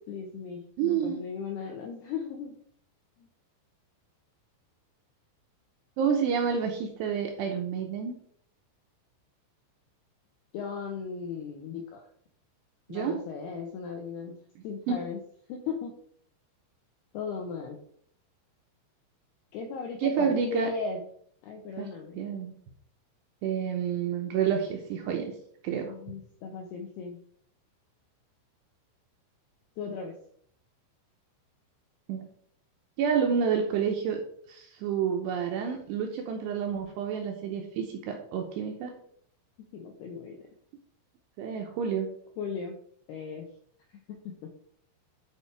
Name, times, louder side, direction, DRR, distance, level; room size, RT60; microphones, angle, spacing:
voice 1, 0.0-2.6 3.2-3.3 10.5-12.0 12.9-14.3 14.6-15.2 15.5-15.9 17.1-17.8 19.5-21.0 21.4-22.2 25.7-27.2 29.8-30.1 39.7-40.5 42.4-42.8 43.1-43.5 44.1-44.5, left 5 dB, 85° left, 2 dB, 2.3 m, -37 dB
voice 2, 0.8-1.2 6.0-8.2 12.9-13.2 14.9-15.1 20.0-20.7 21.8-22.5 23.4-25.3 25.6-25.9 32.1-32.3 33.0-34.2 34.5-39.0 41.4-42.1, right 7 dB, 80° right, 3 dB, 2.5 m, -29 dB
10.5 x 4.6 x 4.7 m, 0.62 s
omnidirectional pair, 5.8 m